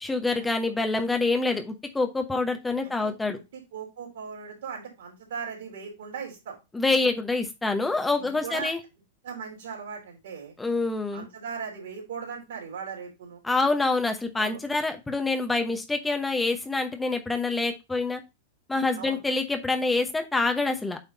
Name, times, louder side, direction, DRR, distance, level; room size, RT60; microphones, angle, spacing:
voice 1, 0.0-3.4 6.7-8.8 10.6-11.3 13.4-18.2 18.7-21.0, left 3 dB, 10° left, 5 dB, 1.0 m, -26 dB
voice 2, 2.8-6.6 7.8-7.9 8.2-8.7 9.2-10.5 11.1-13.4 14.4-14.6 19.0-19.2, right 6 dB, 60° right, 0 dB, 3.4 m, -38 dB
8.4 x 3.5 x 4.0 m, 0.24 s
figure-of-eight pair, 95°, 0 cm